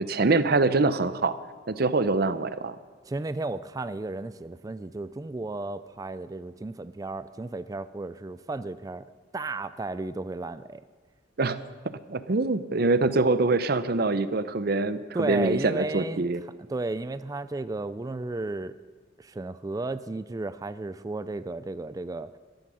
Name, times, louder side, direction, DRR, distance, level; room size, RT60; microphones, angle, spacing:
voice 1, 0.0-1.3 1.7-2.7 11.4-11.7 12.1-16.4, right 3 dB, 50° right, 13 dB, 0.6 m, -24 dB
voice 2, 3.1-9.0 9.3-10.8 15.1-16.2 16.7-18.7 19.2-22.3, right 2 dB, 20° right, 13 dB, 0.3 m, -33 dB
13.5 x 12.0 x 6.3 m, 1.4 s
head